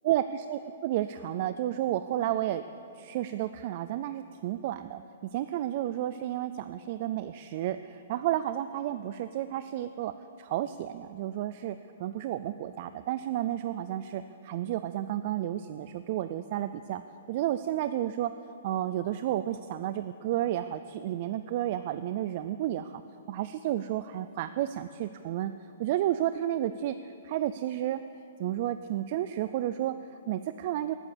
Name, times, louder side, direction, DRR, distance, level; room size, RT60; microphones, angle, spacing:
voice 1, 0.0-2.6 2.9-5.0 5.3-17.0 17.3-18.3 18.6-23.0 23.3-25.5 25.8-28.0 28.4-30.9, right 12 dB, 35° right, 11 dB, 0.3 m, -31 dB
19.0 x 9.1 x 7.2 m, 2.8 s
hypercardioid pair, 175°, 0 cm